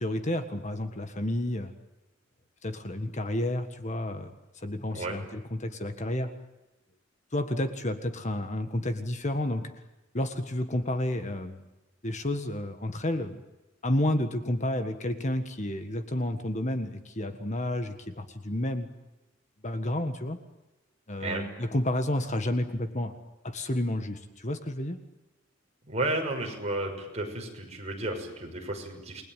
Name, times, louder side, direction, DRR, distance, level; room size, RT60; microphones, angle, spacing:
voice 1, 0.0-1.7 2.6-6.3 7.3-9.7 10.1-11.6 12.0-13.4 13.8-18.9 19.6-20.4 21.1-23.1 23.4-25.0, left 1 dB, 35° left, 8 dB, 1.7 m, -30 dB
voice 2, 25.9-29.2, right 2 dB, 35° right, 1 dB, 6.3 m, -32 dB
29.0 x 20.5 x 9.2 m, 0.99 s
head